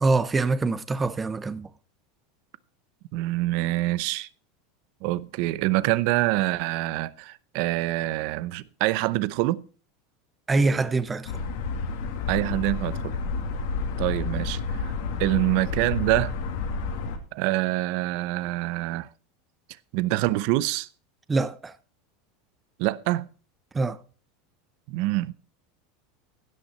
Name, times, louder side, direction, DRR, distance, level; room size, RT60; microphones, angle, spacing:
voice 1, 0.0-1.7 10.5-11.3 21.3-21.7 23.7-24.0, right 3 dB, 15° right, 0.8 m, -24 dB
voice 2, 3.1-4.3 5.0-9.6 12.3-13.1 14.0-14.9 15.2-16.3 17.3-19.1 19.9-20.9 22.8-23.3 24.9-25.3, right 18 dB, 60° right, 0.6 m, -25 dB
sound 1, 11.3-17.2, left 4 dB, 70° left, 2.1 m, -30 dB
16.0 x 6.3 x 4.3 m
supercardioid pair, 125°, 0 cm